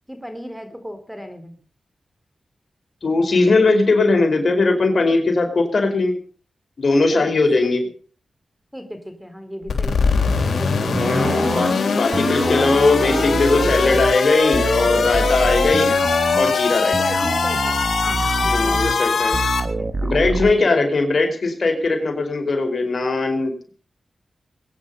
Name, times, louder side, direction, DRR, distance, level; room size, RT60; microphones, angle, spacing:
voice 1, 0.1-1.6 7.1-7.9 8.7-10.1 10.5-11.2 15.9-16.1 16.8-19.2 19.8-20.9, equal, 5° right, 8 dB, 4.1 m, -36 dB
voice 2, 3.0-6.2 6.8-7.8 10.9-15.9 16.3-16.9 18.4-19.4 20.0-23.7, left 3 dB, 60° left, 4 dB, 5.0 m, -19 dB
sound 1, 9.7-19.6, left 5 dB, 75° left, 3.6 m, -21 dB
sound 2, 10.9-20.5, right 3 dB, 45° right, 1.8 m, -26 dB
22.0 x 10.0 x 5.6 m, 0.42 s
cardioid pair, 55°, 0 cm